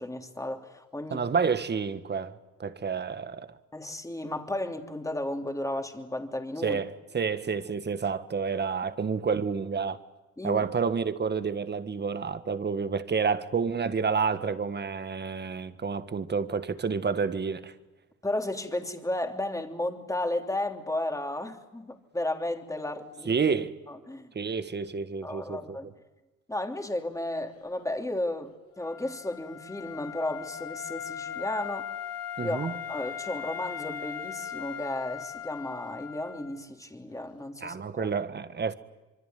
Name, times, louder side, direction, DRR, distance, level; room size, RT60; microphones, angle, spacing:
voice 1, 0.0-1.2 3.7-6.8 10.4-10.6 18.2-23.3 23.9-24.3 25.2-25.9 26.5-31.9 32.4-38.1, left 1 dB, 10° left, 3.2 m, -33 dB
voice 2, 1.1-3.6 6.6-10.0 10.4-17.7 23.2-23.8 24.3-25.8 32.4-32.7 37.6-38.7, right 5 dB, 35° right, 1.7 m, -29 dB
Wind instrument woodwind instrument, 28.8-36.6, left 9 dB, 50° left, 3.2 m, -39 dB
26.0 x 24.0 x 9.4 m
cardioid pair, 90°, 30 cm